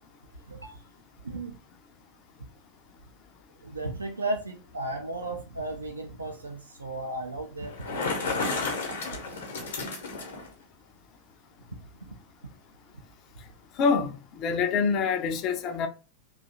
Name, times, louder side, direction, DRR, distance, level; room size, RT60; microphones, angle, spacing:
voice 1, 0.5-0.8 1.2-1.6 3.6-8.8 9.3-9.4 11.7-12.1, right 2 dB, 80° right, 0.4 m, -35 dB
Bicycle, 7.6-10.5, left 3 dB, 65° left, 0.8 m, -32 dB
voice 2, 13.8-15.9, left 5 dB, 35° left, 0.4 m, -26 dB
2.6 x 2.3 x 2.6 m
figure-of-eight pair, 90°, 0 cm